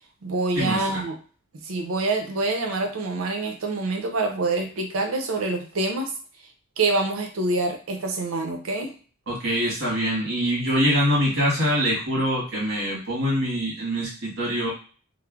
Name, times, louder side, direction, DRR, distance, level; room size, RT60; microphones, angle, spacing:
voice 1, 0.2-1.2 1.6-6.1 6.8-8.9, right 3 dB, 85° right, 4 dB, 0.6 m, -26 dB
voice 2, 9.3-14.7, equal, 65° right, -4 dB, 1.4 m, -24 dB
3.1 x 2.1 x 2.3 m, 0.40 s
head